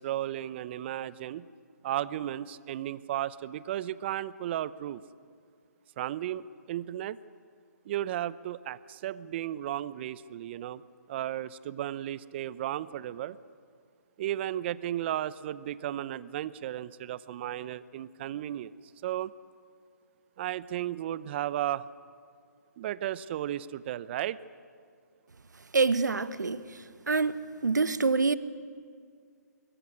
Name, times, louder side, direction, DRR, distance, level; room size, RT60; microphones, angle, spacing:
voice 1, 0.0-1.5 1.8-5.0 6.0-7.2 7.9-10.8 11.1-13.4 14.2-18.7 19.0-19.3 20.4-21.9 22.8-24.4, right 12 dB, 40° right, 17 dB, 0.8 m, -34 dB
voice 2, 25.7-26.6 27.1-27.4 27.6-28.4, right 4 dB, 90° right, 14 dB, 1.1 m, -25 dB
25.5 x 21.0 x 9.7 m, 2.2 s
hypercardioid pair, 145°, 9 cm